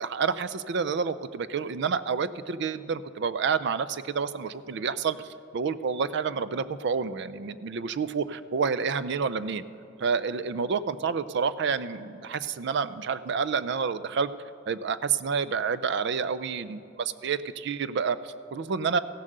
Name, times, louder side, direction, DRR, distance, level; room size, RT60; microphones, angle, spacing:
voice 1, 0.0-5.2 5.5-9.6 10.0-14.3 14.7-19.0, right 5 dB, 60° right, 15 dB, 0.4 m, -29 dB
15.5 x 7.3 x 6.6 m, 2.6 s
head